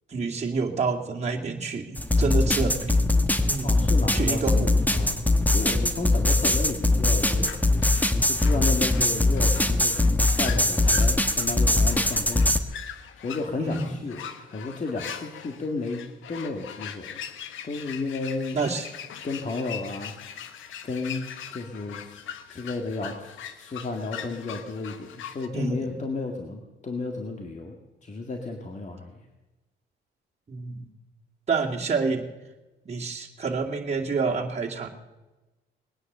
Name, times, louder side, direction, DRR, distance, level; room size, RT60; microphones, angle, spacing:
voice 1, 0.1-2.9 3.5-3.8 4.1-4.8 13.6-13.9 18.5-18.9 25.5-26.0 30.5-30.9 31.5-32.3 32.9-34.9, right 4 dB, 35° right, -1 dB, 2.4 m, -28 dB
sound 1, 2.0-12.6, left 2 dB, 10° left, 1.1 m, -22 dB
voice 2, 3.6-7.8 8.3-12.5 13.2-16.0 16.3-17.2 17.6-18.7 19.2-20.5 20.8-21.3 21.5-22.2 22.5-27.7 28.0-29.1, left 3 dB, 35° left, 2 dB, 1.9 m, -33 dB
sound 2, 7.4-25.5, left 9 dB, 80° left, 1.1 m, -41 dB
20.5 x 9.8 x 6.8 m, 1.1 s
cardioid pair, 90°, 20 cm